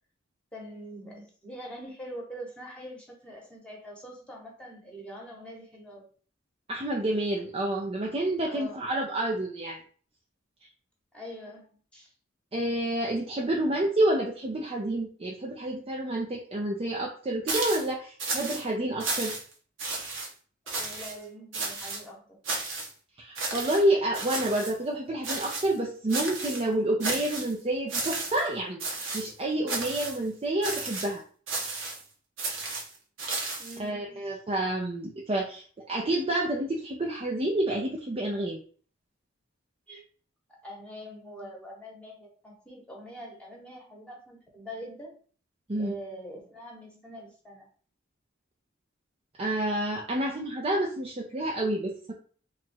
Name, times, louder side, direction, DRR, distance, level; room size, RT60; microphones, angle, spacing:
voice 1, 0.5-6.1 8.5-8.9 11.1-11.6 11.9-12.1 20.7-22.4 33.6-34.4 39.9-40.0 40.6-45.2 45.8-47.7, equal, 5° left, -2 dB, 1.1 m, -44 dB
voice 2, 6.7-9.8 12.5-19.3 23.2-28.8 29.1-31.2 33.8-38.6 45.7-45.9 49.4-52.1, right 1 dB, 30° right, -1 dB, 0.5 m, -29 dB
sound 1, 17.5-17.9 18.2-18.6 19.0-19.5 19.8-20.3 20.7-21.1 21.5-22.0 22.4-22.9 23.4-23.8 24.1-24.7 25.2-25.8 26.1-26.6 27.0-27.5 27.9-28.5 28.8-29.3 29.7-30.2 30.6-31.1 31.5-32.0 32.4-33.8, right 3 dB, 80° right, 1.1 m, -33 dB
3.0 x 2.6 x 4.4 m, 0.42 s
head